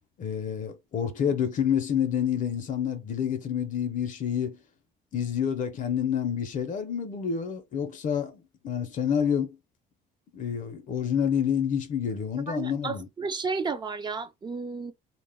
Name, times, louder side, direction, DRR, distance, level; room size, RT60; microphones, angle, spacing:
voice 1, 0.2-4.6 5.1-9.6 10.3-13.1, left 8 dB, 50° left, 0.5 m, -28 dB
voice 2, 12.5-14.9, right 4 dB, 25° right, 0.4 m, -32 dB
2.1 x 2.0 x 3.3 m
cardioid pair, 110°, 17 cm